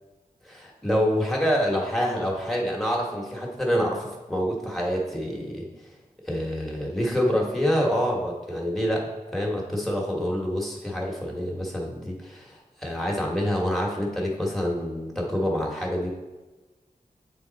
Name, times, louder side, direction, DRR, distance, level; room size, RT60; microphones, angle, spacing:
voice 1, 0.4-5.7 6.3-16.1, equal, ahead, -2 dB, 1.3 m, -27 dB
8.0 x 3.5 x 4.0 m, 1.2 s
wide cardioid pair, 75°, 15 cm